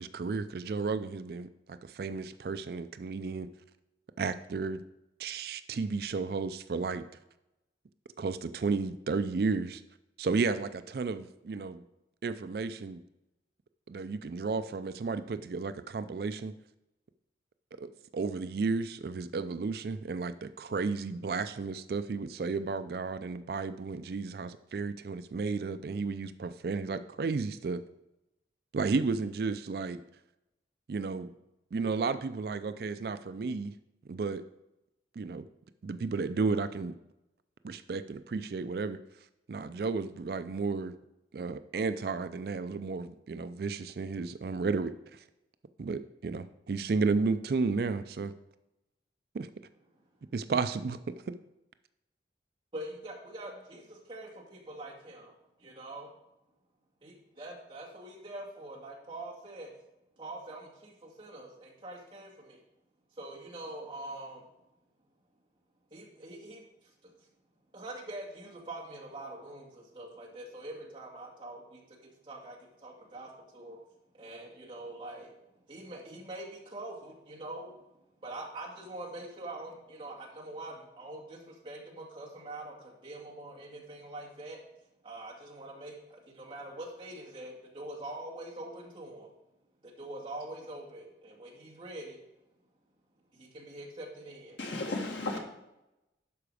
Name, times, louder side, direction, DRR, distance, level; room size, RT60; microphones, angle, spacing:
voice 1, 0.0-3.5 4.2-4.8 5.2-7.0 8.2-9.8 10.2-11.8 12.2-13.0 13.9-16.5 17.8-27.8 28.7-30.0 30.9-31.3 31.7-33.7 34.1-34.4 35.2-35.5 35.8-37.0 37.6-39.0 39.5-40.9 41.3-45.2 45.8-48.3 49.3-49.5 50.3-51.0 51.3-51.4, right 4 dB, 55° right, 12 dB, 0.4 m, -33 dB
voice 2, 52.7-55.3 55.6-56.1 57.0-59.7 60.2-62.6 63.2-64.5 65.9-67.1 67.7-72.0 72.2-73.8 74.1-75.3 75.7-77.7 78.2-84.6 85.0-89.3 89.8-92.2 93.3-94.6 95.3-95.4, right 1 dB, 25° right, -4 dB, 2.1 m, -44 dB
voice 3, 94.6-95.4, left 2 dB, 85° left, 2 dB, 1.7 m, -34 dB
11.5 x 4.9 x 4.9 m, 0.92 s
head